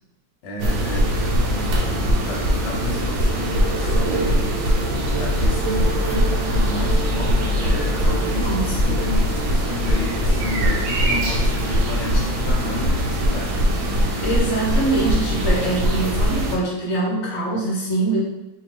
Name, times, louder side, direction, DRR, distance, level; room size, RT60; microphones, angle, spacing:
voice 1, 0.4-1.8 2.1-4.5 5.1-8.5 8.8-13.6, left 2 dB, 75° left, -1 dB, 1.5 m, -31 dB
sound 1, 0.6-16.6, equal, 80° right, 1.5 m, -21 dB
voice 2, 8.4-9.1 14.2-18.2, right 2 dB, 40° left, -4 dB, 1.2 m, -24 dB
4.4 x 2.7 x 3.1 m, 1.0 s
omnidirectional pair, 2.1 m